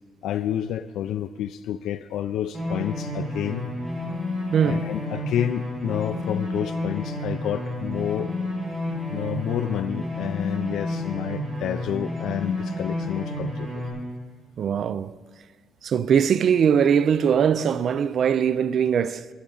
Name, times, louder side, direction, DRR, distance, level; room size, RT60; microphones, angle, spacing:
voice 1, 0.2-3.7 4.6-8.3 9.1-13.8, left 11 dB, 75° left, 0.4 m, -29 dB
sound 1, 2.5-13.9, left 1 dB, 25° right, 4.5 m, -30 dB
voice 2, 4.5-4.9 14.6-15.1 15.8-19.2, right 7 dB, 50° right, 0.4 m, -21 dB
20.0 x 11.0 x 3.9 m
cardioid pair, 155°, 0 cm